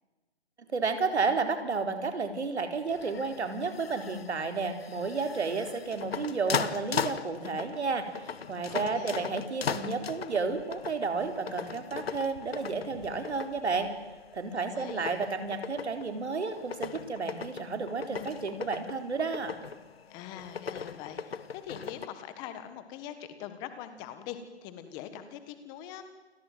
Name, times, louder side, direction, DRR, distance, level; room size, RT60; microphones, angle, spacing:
voice 1, 0.7-13.9 14.3-19.6, right 4 dB, 75° right, 7 dB, 4.3 m, -32 dB
sound 1, 2.9-22.1, left 6 dB, 60° left, 1.7 m, -39 dB
voice 2, 8.7-9.3 14.6-15.1 20.1-26.0, left 10 dB, 10° left, 10 dB, 1.5 m, -43 dB
29.5 x 20.0 x 9.3 m, 1.2 s
hypercardioid pair, 165°, 33 cm